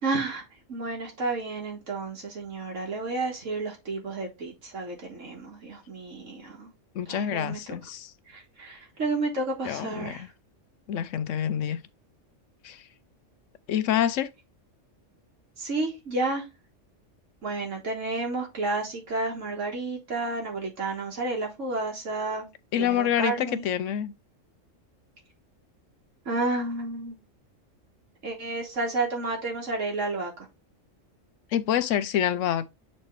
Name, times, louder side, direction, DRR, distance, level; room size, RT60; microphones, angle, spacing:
voice 1, 0.0-6.7 7.1-7.6 8.3-10.3 15.6-16.5 17.4-22.5 22.8-23.6 26.3-27.2 28.2-30.5, right 3 dB, 75° right, 1.9 m, -31 dB
voice 2, 6.9-8.1 9.6-10.3 10.9-11.8 12.6-12.8 13.7-14.3 22.7-24.1 31.5-32.7, left 10 dB, 75° left, 1.0 m, -27 dB
7.1 x 4.3 x 3.2 m
omnidirectional pair, 1.3 m